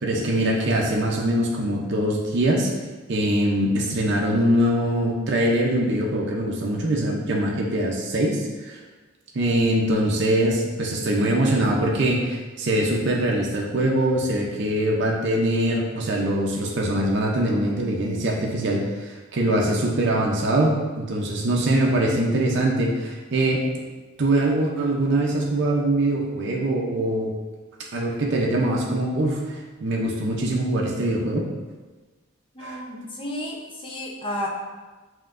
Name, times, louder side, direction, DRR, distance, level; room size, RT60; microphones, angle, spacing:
voice 1, 0.0-2.7 3.1-8.8 9.3-23.6 24.2-27.3 27.9-31.5 32.6-32.8, right 1 dB, 55° right, -2 dB, 0.5 m, -23 dB
voice 2, 32.5-34.5, left 1 dB, 25° left, -2 dB, 0.6 m, -32 dB
5.4 x 2.8 x 2.5 m, 1.3 s
head